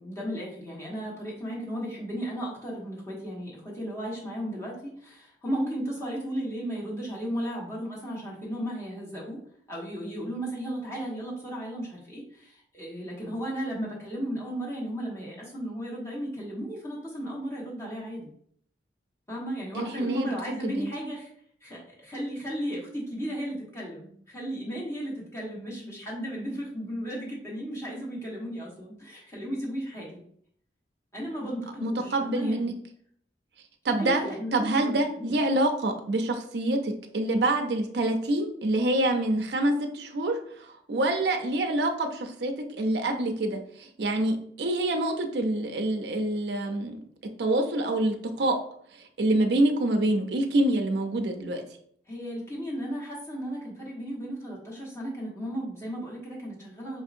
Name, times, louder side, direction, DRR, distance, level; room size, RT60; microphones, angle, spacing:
voice 1, 0.0-9.4 9.7-18.3 19.3-21.3 21.6-30.2 31.1-32.7 34.0-35.3 52.1-57.0, equal, 15° left, -4 dB, 1.1 m, -35 dB
voice 2, 19.8-20.3 20.6-20.9 31.8-32.7 33.8-34.2 34.5-47.0 47.4-48.6 49.2-51.6, right 1 dB, 65° right, 5 dB, 0.5 m, -26 dB
5.0 x 2.7 x 2.5 m, 0.63 s
head